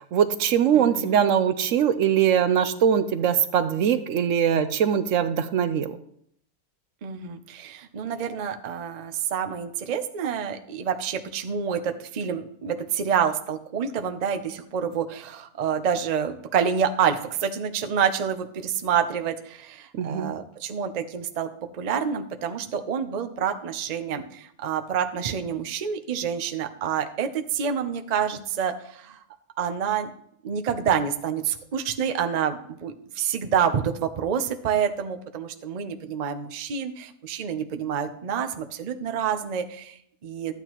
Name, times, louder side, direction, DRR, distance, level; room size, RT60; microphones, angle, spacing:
voice 1, 0.0-6.0 19.9-20.3, right 8 dB, 70° right, 12 dB, 0.9 m, -22 dB
voice 2, 0.7-1.3 7.0-29.2 29.6-30.1 30.4-40.5, right 7 dB, 45° right, 7 dB, 0.6 m, -28 dB
12.5 x 9.0 x 3.0 m, 0.69 s
omnidirectional pair, 1.5 m